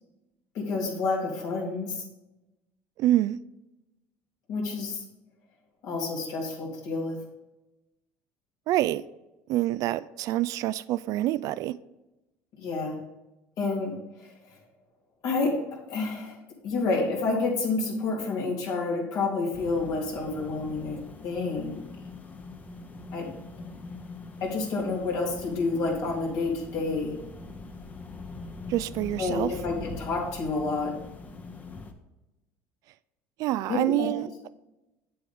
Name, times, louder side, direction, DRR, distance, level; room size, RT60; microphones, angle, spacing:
voice 1, 0.5-2.0 4.5-5.0 5.8-7.2 12.6-13.0 13.6-14.3 15.2-15.5 15.9-16.4 16.6-21.0 21.2-21.8 23.1-23.3 24.4-27.1 29.2-30.9 33.7-34.1, left 3 dB, 65° left, 3.0 m, -29 dB
voice 2, 3.0-3.4 8.7-9.0 9.5-11.8 28.7-29.5 33.4-34.5, right 14 dB, 60° right, 0.3 m, -26 dB
sound 1, 19.5-31.9, left 3 dB, 25° left, 1.1 m, -42 dB
8.4 x 7.7 x 3.6 m
supercardioid pair, 100°, 7 cm